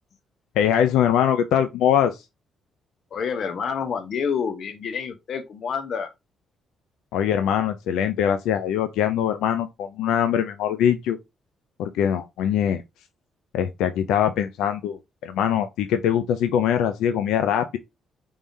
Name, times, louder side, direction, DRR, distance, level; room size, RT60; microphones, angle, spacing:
voice 1, 0.6-2.2 7.1-11.2 11.8-12.8 13.5-17.8, left 9 dB, 90° left, 0.4 m, -22 dB
voice 2, 3.1-6.1, left 6 dB, 60° left, 0.7 m, -28 dB
3.6 x 3.3 x 2.6 m
cardioid pair, 90°, 0 cm